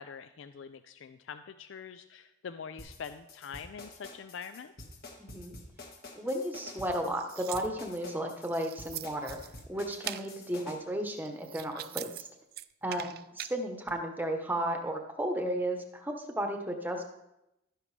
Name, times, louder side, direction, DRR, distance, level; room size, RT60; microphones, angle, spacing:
voice 1, 0.0-4.9 12.9-13.1, left 6 dB, 75° left, 11 dB, 0.4 m, -44 dB
sound 1, 2.8-10.8, left 2 dB, 50° left, 1.6 m, -48 dB
voice 2, 5.2-5.5 6.2-9.4 9.7-12.3 12.8-17.0, right 1 dB, 10° right, 3 dB, 1.0 m, -34 dB
sound 2, 6.8-8.0 8.5-9.6 10.0-10.3 11.0-12.2 12.5-13.5, right 14 dB, 50° right, 0.3 m, -42 dB
12.0 x 10.0 x 3.3 m, 0.90 s
head